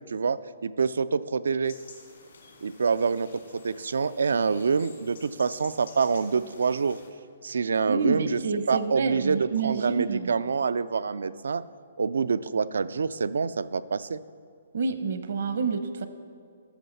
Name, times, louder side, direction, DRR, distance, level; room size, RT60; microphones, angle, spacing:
voice 1, 0.0-1.8 2.6-7.0 7.4-8.4 8.7-11.6 12.0-14.2, right 5 dB, 85° right, 15 dB, 0.4 m, -26 dB
sound 1, 1.6-7.1, left 4 dB, 80° left, 2.5 m, -51 dB
voice 2, 7.9-10.3 14.7-16.1, right 4 dB, 65° right, 10 dB, 0.9 m, -28 dB
13.0 x 6.3 x 5.4 m, 2.2 s
hypercardioid pair, 150°, 0 cm